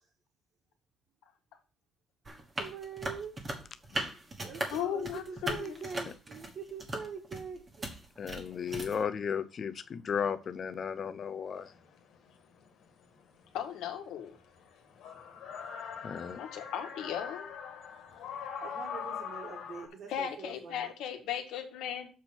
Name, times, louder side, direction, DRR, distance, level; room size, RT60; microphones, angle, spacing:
sound 1, 2.3-9.0, right 1 dB, 20° right, 1.4 m, -38 dB
voice 1, 2.6-3.3 4.4-7.9 18.6-20.9, right 6 dB, 45° right, -2 dB, 1.5 m, -43 dB
voice 2, 4.7-5.7 13.5-14.4 16.4-17.5 20.1-22.1, left 9 dB, 85° left, 6 dB, 1.5 m, -36 dB
voice 3, 8.2-11.7 16.0-16.4, left 7 dB, 35° left, 11 dB, 0.5 m, -35 dB
sound 2, 11.7-11.8 14.2-19.9, left 7 dB, 65° left, 1.6 m, -42 dB
7.1 x 4.4 x 6.0 m, 0.34 s
cardioid pair, 175°, 0 cm